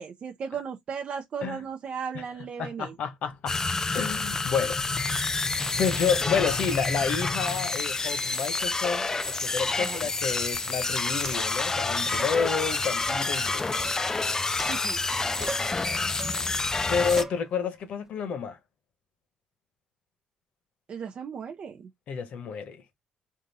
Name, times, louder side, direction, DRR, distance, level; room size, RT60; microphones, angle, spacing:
voice 1, 0.0-3.0 9.8-10.1 14.6-15.0 20.9-21.9, right 6 dB, 55° right, 0.6 m, -36 dB
voice 2, 2.6-3.6 3.9-4.8 5.1-5.2 5.8-13.8 15.4-15.7 16.9-18.6 22.1-22.8, left 6 dB, 75° left, 1.0 m, -30 dB
sound 1, 3.5-17.2, left 3 dB, 25° left, 0.4 m, -28 dB
sound 2, 10.5-10.6 11.2-11.6 12.1-12.4 13.0-14.3 14.6-15.1 15.4-15.8 16.2-16.5 17.1-17.4, right 2 dB, 20° right, 1.0 m, -39 dB
3.7 x 2.6 x 3.9 m
cardioid pair, 85°, 2 cm